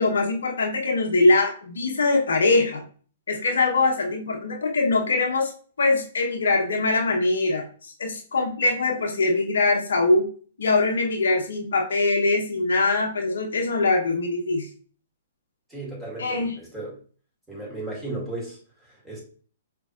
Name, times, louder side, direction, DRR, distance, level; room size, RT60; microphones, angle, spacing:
voice 1, 0.0-2.8 3.3-5.5 5.8-10.3 10.6-14.7 16.2-16.5, left 3 dB, 80° left, 1 dB, 0.9 m, -22 dB
voice 2, 15.7-17.0 17.5-19.2, right 2 dB, 5° right, -5 dB, 2.2 m, -35 dB
5.2 x 3.1 x 2.4 m, 0.42 s
hypercardioid pair, 130°, 0 cm